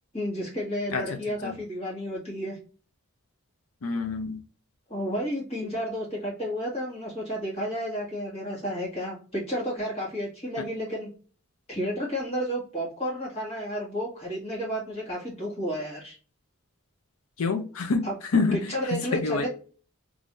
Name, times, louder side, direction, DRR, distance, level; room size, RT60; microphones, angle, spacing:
voice 1, 0.1-2.6 4.9-11.1 11.7-16.2 18.0-18.2 18.5-19.5, equal, 30° left, 1.9 m, -31 dB
voice 2, 0.9-1.6 3.8-4.4 10.6-10.7 17.4-19.5, left 4 dB, 80° left, 0.5 m, -28 dB
3.6 x 3.1 x 2.5 m
head